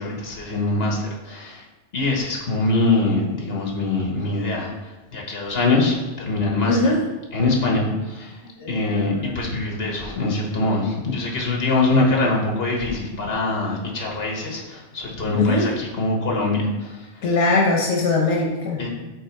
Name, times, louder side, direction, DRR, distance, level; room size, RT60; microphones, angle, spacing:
voice 1, 0.0-1.6 1.9-4.7 5.1-6.8 7.3-8.4 8.7-17.1 18.8-18.9, left 2 dB, 60° left, -1 dB, 1.6 m, -23 dB
voice 2, 6.6-7.0 8.6-9.2 15.3-15.6 17.2-18.8, left 3 dB, 90° left, -1 dB, 1.2 m, -21 dB
6.5 x 4.1 x 4.6 m, 1.1 s
omnidirectional pair, 1.2 m